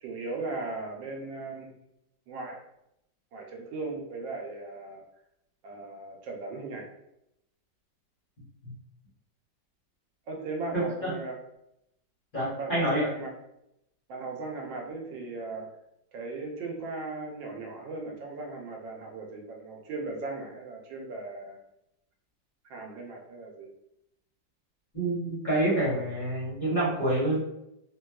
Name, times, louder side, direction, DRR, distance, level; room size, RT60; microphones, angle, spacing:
voice 1, 0.0-1.7 2.3-2.6 3.3-5.0 5.6-6.9 10.3-11.3 12.4-13.3 14.1-15.7 16.1-21.6 22.6-23.7, right 3 dB, 80° right, 1 dB, 1.3 m, -37 dB
voice 2, 10.7-11.1 12.3-13.1 24.9-27.4, right 1 dB, 30° left, -9 dB, 1.1 m, -27 dB
4.1 x 2.3 x 2.2 m, 0.83 s
omnidirectional pair, 2.0 m